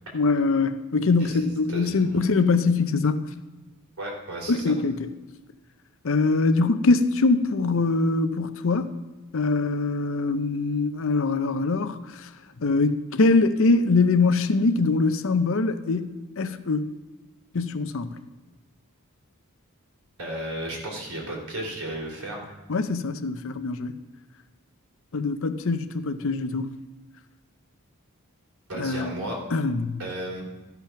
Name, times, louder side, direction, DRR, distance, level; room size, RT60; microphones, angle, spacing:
voice 1, 0.1-3.2 4.5-5.1 6.0-8.9 9.3-12.3 12.6-16.8 17.5-18.2 22.7-23.9 25.1-26.7 28.8-29.1 29.5-30.0, left 3 dB, 65° left, 0.6 m, -23 dB
voice 2, 1.2-2.3 4.0-4.6 20.2-22.5 28.7-29.4 30.0-30.4, right 1 dB, 85° right, 3.0 m, -34 dB
13.0 x 5.8 x 5.8 m
head